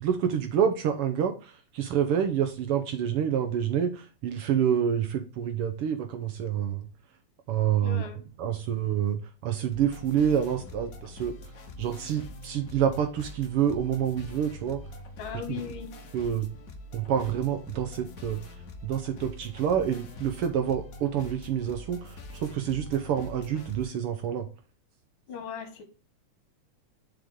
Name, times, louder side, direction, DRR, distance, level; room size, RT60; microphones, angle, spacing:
voice 1, 0.0-6.9 7.5-8.0 8.4-11.3 11.8-14.8 15.5-15.6 16.1-16.5 16.9-18.4 18.8-24.5, right 8 dB, 70° right, 1.4 m, -27 dB
voice 2, 7.8-8.3 15.2-15.9 25.3-25.8, left 8 dB, 50° left, 1.9 m, -38 dB
sound 1, 9.7-23.8, left 1 dB, 90° left, 0.7 m, -44 dB
6.9 x 5.1 x 3.6 m
omnidirectional pair, 3.3 m